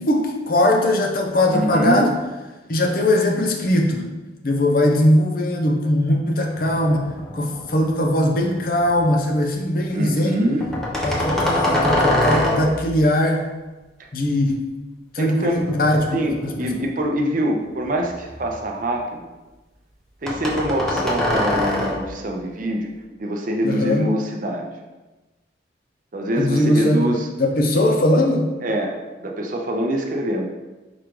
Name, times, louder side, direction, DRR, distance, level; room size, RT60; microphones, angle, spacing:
voice 1, 0.0-2.1 2.7-4.1 4.4-7.1 7.3-10.4 11.0-13.5 14.1-14.6 15.1-16.2 16.4-16.7 23.6-24.1 26.4-27.1 27.4-28.5, left 1 dB, 50° left, 2 dB, 0.6 m, -20 dB
voice 2, 1.5-2.1 9.9-10.7 14.0-14.1 15.2-15.7 16.1-19.3 20.2-22.9 23.2-24.7 26.1-27.3 27.8-27.9 28.6-30.5, equal, 45° right, 2 dB, 0.5 m, -24 dB
sound 1, 6.6-7.9 8.3-9.0 10.6-13.0 15.5-17.0 17.6-18.8 20.3-22.2, left 1 dB, 5° left, 0.6 m, -24 dB
4.7 x 2.5 x 4.6 m, 1.1 s
head